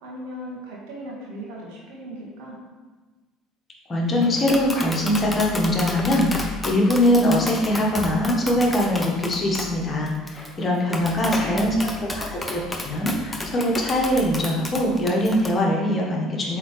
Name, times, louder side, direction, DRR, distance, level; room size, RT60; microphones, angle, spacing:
voice 1, 0.0-2.6 10.9-12.1, right 1 dB, 65° right, -3 dB, 1.6 m, -38 dB
voice 2, 3.9-11.8 12.1-16.6, left 1 dB, 35° left, -2 dB, 1.5 m, -22 dB
Tap, 4.2-15.5, left 2 dB, 15° left, 0.8 m, -32 dB
7.8 x 3.7 x 3.3 m, 1.3 s
figure-of-eight pair, 60°, 0 cm